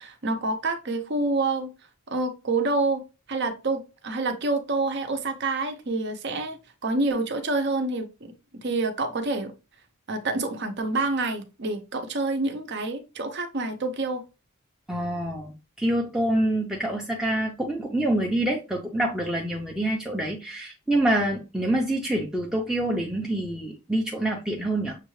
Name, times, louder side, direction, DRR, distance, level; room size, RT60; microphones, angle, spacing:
voice 1, 0.0-1.7 2.1-3.0 3.3-6.6 6.8-8.1 8.6-9.5 10.1-14.2, right 3 dB, 50° right, 0.7 m, -27 dB
voice 2, 14.9-15.5 15.8-25.0, right 1 dB, 5° right, 0.5 m, -26 dB
6.5 x 2.3 x 3.1 m
head